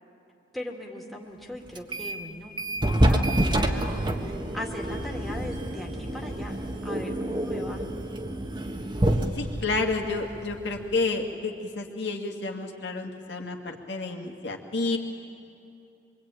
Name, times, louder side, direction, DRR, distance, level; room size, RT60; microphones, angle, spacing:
voice 1, 0.5-6.6 6.8-7.8, left 1 dB, ahead, 1 dB, 2.3 m, -39 dB
sound 1, 1.8-2.3 2.6-11.0, right 1 dB, 25° right, 1.5 m, -28 dB
voice 2, 9.4-15.0, left 3 dB, 65° left, 2 dB, 2.4 m, -30 dB
25.5 x 24.0 x 9.2 m, 2.7 s
head